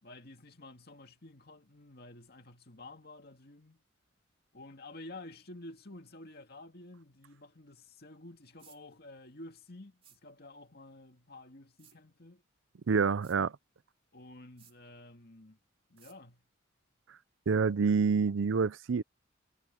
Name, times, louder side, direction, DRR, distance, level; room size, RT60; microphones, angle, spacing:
voice 1, 0.0-3.8 4.5-12.4 14.1-15.6 15.9-16.4, left 2 dB, 50° left, 2.2 m, -51 dB
sound 1, 8.6-8.8 10.0-10.2 11.8-12.0 13.2-13.4 14.6-14.8 16.0-16.2, right 8 dB, 30° right, 3.6 m, -60 dB
voice 2, 12.9-13.5 17.5-19.0, right 5 dB, 70° right, 0.5 m, -27 dB
head